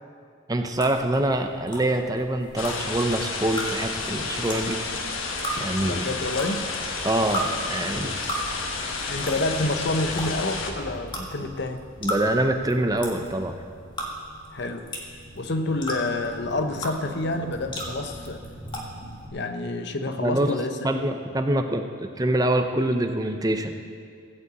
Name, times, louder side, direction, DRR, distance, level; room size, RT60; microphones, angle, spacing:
voice 1, 0.5-4.8 5.6-6.1 7.0-8.2 12.0-13.5 20.2-20.5 20.8-23.7, right 1 dB, 20° right, 6 dB, 0.5 m, -25 dB
sound 1, 0.7-19.3, equal, 20° left, 1.6 m, -37 dB
sound 2, 2.6-10.7, left 4 dB, 80° left, 1.3 m, -31 dB
voice 2, 5.8-6.7 7.8-8.2 9.1-11.8 14.5-14.9 15.4-18.4 19.3-21.0, left 2 dB, 55° left, 7 dB, 0.8 m, -28 dB
16.0 x 5.6 x 8.2 m, 2.2 s
head